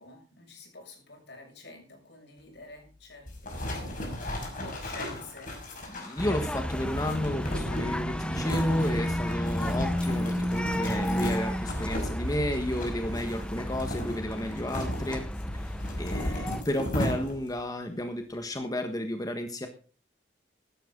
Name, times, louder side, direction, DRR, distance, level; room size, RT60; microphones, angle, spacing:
voice 1, 0.0-5.6, left 2 dB, 75° left, 2 dB, 7.3 m, -49 dB
sound 1, 3.3-17.6, equal, 50° left, 5.9 m, -36 dB
voice 2, 5.9-15.3 15.5-19.7, left 1 dB, 20° left, 6 dB, 1.5 m, -32 dB
sound 2, 6.2-16.6, equal, 5° left, 1.0 m, -32 dB
16.0 x 12.5 x 3.9 m, 0.36 s
head